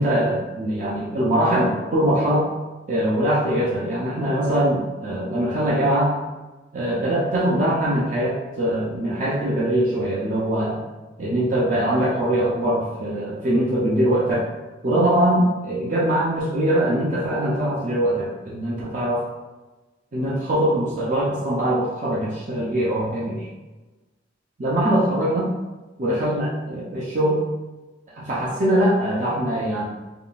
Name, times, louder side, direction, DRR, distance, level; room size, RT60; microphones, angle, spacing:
voice 1, 0.0-2.5 2.9-6.1 6.7-10.8 11.2-14.5 14.8-19.2 20.1-23.5 24.6-25.5 26.0-27.4 28.2-29.8, right 1 dB, 40° right, -6 dB, 0.4 m, -22 dB
3.6 x 2.3 x 2.4 m, 1.2 s
head